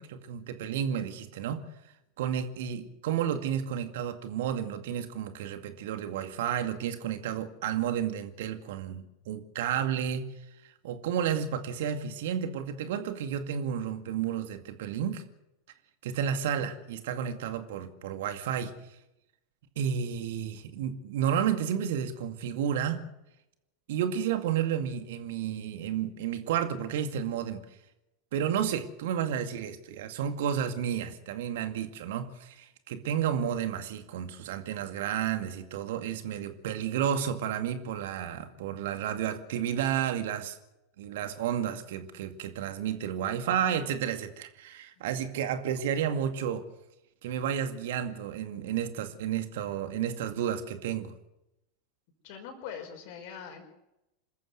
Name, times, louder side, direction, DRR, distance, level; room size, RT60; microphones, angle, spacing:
voice 1, 0.0-1.6 2.2-10.3 10.8-15.2 16.0-18.7 19.8-23.0 23.9-27.7 28.3-40.6 41.0-46.6 47.2-51.1, right 9 dB, 60° right, 7 dB, 2.3 m, -31 dB
voice 2, 52.2-53.6, left 7 dB, 55° left, 5 dB, 5.3 m, -42 dB
27.0 x 14.0 x 8.1 m, 0.89 s
figure-of-eight pair, 85°, 0 cm